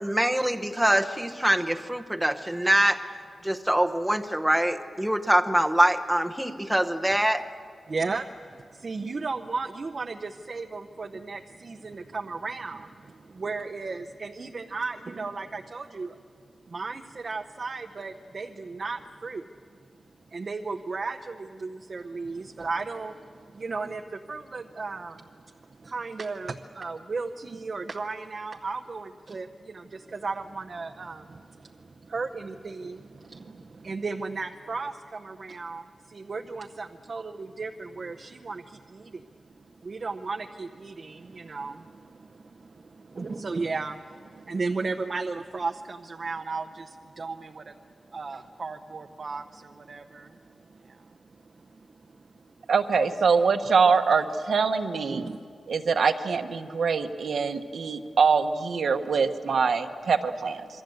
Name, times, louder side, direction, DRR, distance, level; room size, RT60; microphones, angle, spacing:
voice 1, 0.0-3.0 3.4-7.4, right 1 dB, 5° right, 4 dB, 1.0 m, -24 dB
voice 2, 7.9-16.2 16.6-19.5 20.3-52.7 55.1-55.4, right 4 dB, 40° right, 5 dB, 0.8 m, -35 dB
voice 3, 52.7-55.2 55.7-60.6, right 5 dB, 75° right, 7 dB, 1.3 m, -24 dB
27.0 x 23.5 x 7.9 m, 2.3 s
wide cardioid pair, 165°, 0 cm